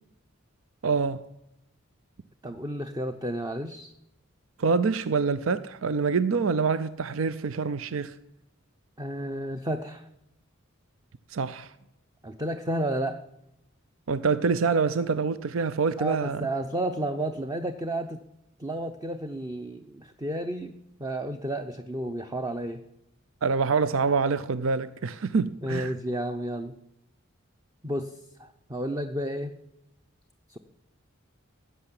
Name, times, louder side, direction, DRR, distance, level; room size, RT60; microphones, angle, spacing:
voice 1, 0.8-1.3 4.6-8.2 11.3-11.7 14.1-16.5 23.4-25.9, right 5 dB, 75° right, 0.6 m, -26 dB
voice 2, 2.4-3.9 9.0-10.1 12.2-13.2 16.0-18.2 18.6-20.7 21.0-22.8 25.6-26.7 27.8-29.5 30.5-30.6, right 1 dB, 20° right, 0.7 m, -32 dB
16.5 x 6.8 x 9.9 m
head